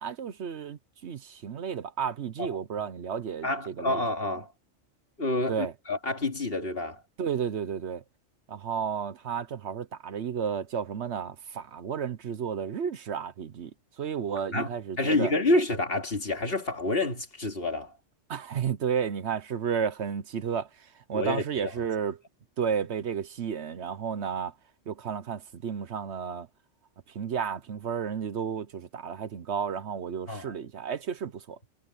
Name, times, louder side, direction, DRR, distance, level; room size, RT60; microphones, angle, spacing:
voice 1, 0.0-4.0 5.5-5.7 7.2-8.0 8.5-13.7 14.0-15.3 18.3-22.2 22.6-24.5 24.9-26.5 27.1-31.6, right 7 dB, 65° right, 1.1 m, -32 dB
voice 2, 3.4-4.5 5.2-7.0 14.5-17.9 21.1-21.4 30.3-30.5, left 2 dB, 50° left, 2.7 m, -28 dB
omnidirectional pair, 1.3 m